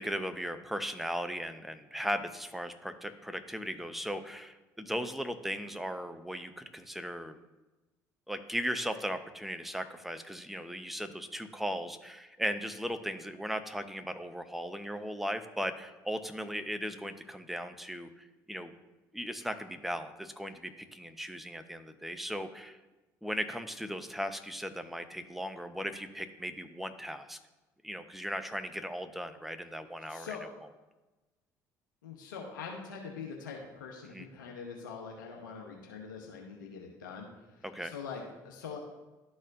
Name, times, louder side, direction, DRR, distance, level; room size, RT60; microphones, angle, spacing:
voice 1, 0.0-7.4 8.3-18.1 18.5-18.7 19.1-22.8 23.2-27.4 27.8-30.4 34.1-34.3 37.6-37.9, equal, ahead, 8 dB, 0.7 m, -37 dB
voice 2, 30.1-30.4 32.0-38.8, left 5 dB, 85° left, 0 dB, 0.9 m, -43 dB
12.0 x 4.2 x 2.6 m, 1.1 s
hypercardioid pair, 60°, 10 cm